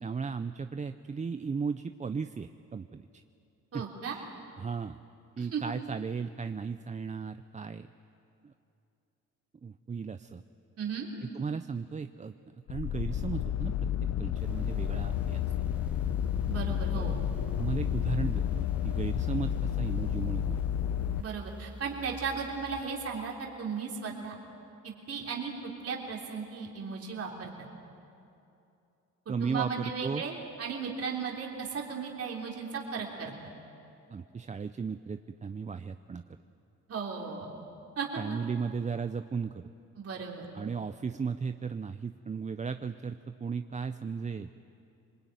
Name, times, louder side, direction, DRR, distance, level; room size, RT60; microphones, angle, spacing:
voice 1, 0.0-3.1 3.7-3.8 4.1-4.3 4.6-5.0 5.4-7.9 8.4-8.5 9.6-10.4 11.2-12.3 12.7-13.9 14.2-15.4 16.9-17.2 17.6-20.6 29.3-30.2 34.1-36.2 38.2-39.6 40.5-44.5, right 5 dB, 25° right, 10 dB, 0.6 m, -35 dB
voice 2, 3.7-4.2 5.4-5.6 10.8-11.1 16.5-17.2 21.2-24.3 24.8-25.5 25.8-27.5 29.3-33.3 36.9-37.5 38.0-38.4 40.0-40.4, right 5 dB, 50° right, -1 dB, 3.6 m, -36 dB
sound 1, 12.7-21.2, left 10 dB, 60° left, 0.8 m, -31 dB
sound 2, 14.4-22.8, right 1 dB, 5° right, 2.6 m, -47 dB
26.0 x 21.0 x 9.3 m, 2.7 s
cardioid pair, 90°, 30 cm